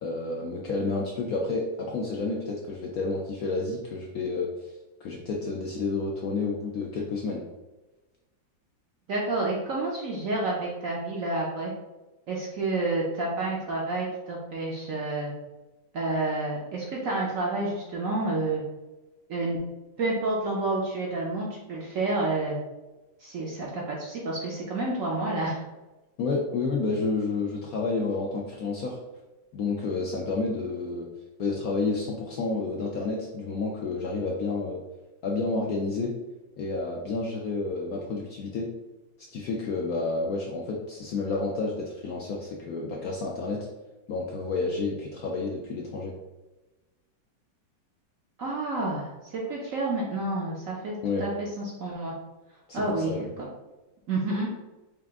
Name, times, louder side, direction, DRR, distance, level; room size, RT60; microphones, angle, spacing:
voice 1, 0.0-4.7 5.0-7.4 26.2-29.0 29.5-31.1 31.4-34.8 35.2-36.1 36.6-38.7 39.3-43.6 44.1-46.1 51.0-51.3 52.7-53.3, left 3 dB, 70° left, -2 dB, 0.8 m, -30 dB
voice 2, 9.1-11.7 12.3-15.3 15.9-18.6 19.3-19.6 20.0-22.6 23.2-25.6 48.4-52.1 52.7-53.1 53.4-53.5 54.1-54.5, right 2 dB, 65° right, -3 dB, 0.8 m, -29 dB
4.7 x 2.5 x 3.5 m, 1.1 s
omnidirectional pair, 2.0 m